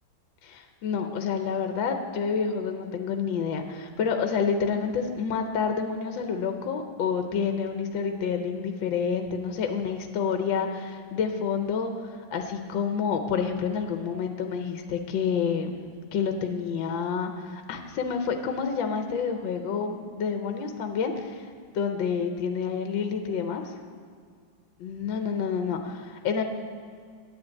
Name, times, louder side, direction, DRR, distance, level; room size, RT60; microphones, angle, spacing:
voice 1, 0.4-15.8 16.1-21.5 21.7-23.6 24.8-26.4, left 6 dB, 70° left, 5 dB, 1.5 m, -28 dB
10.0 x 7.9 x 8.4 m, 2.1 s
omnidirectional pair, 2.2 m